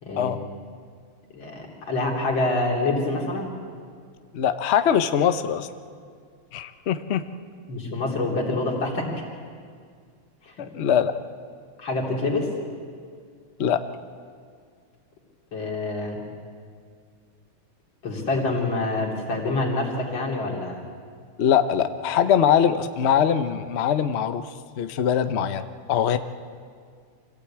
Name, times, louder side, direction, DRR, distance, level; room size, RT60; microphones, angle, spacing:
voice 1, 1.3-3.5 7.7-9.1 10.4-10.7 11.8-12.5 15.5-16.2 18.0-20.8, left 2 dB, 60° left, -1 dB, 3.9 m, -26 dB
voice 2, 4.3-5.7 6.5-7.2 10.6-11.1 13.6-13.8 21.4-24.5 24.8-26.2, left 8 dB, 90° left, 10 dB, 0.5 m, -22 dB
25.0 x 16.0 x 8.7 m, 2.1 s
omnidirectional pair, 2.4 m